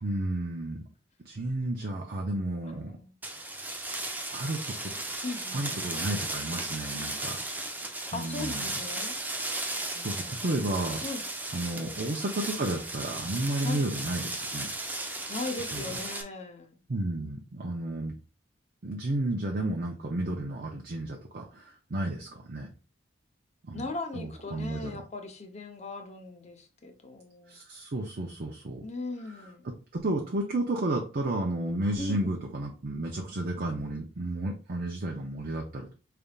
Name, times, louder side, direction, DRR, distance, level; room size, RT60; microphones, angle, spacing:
voice 1, 0.0-0.8 1.2-3.0 4.3-4.9 5.5-7.4 8.1-8.7 9.9-11.0 11.5-14.7 15.7-16.0 16.9-18.1 18.8-22.7 23.6-23.9 24.1-25.0 27.5-28.8 29.3-29.4 29.9-35.9, right 1 dB, 50° right, 0.7 m, -32 dB
voice 2, 2.6-3.1 5.2-5.8 8.1-9.2 9.9-10.6 11.0-11.2 13.6-13.8 15.3-16.8 23.7-27.6 28.8-29.7 32.0-32.4, left 3 dB, 35° left, 0.8 m, -39 dB
sound 1, 3.2-16.2, right 2 dB, 10° right, 0.6 m, -35 dB
5.2 x 3.4 x 2.4 m
head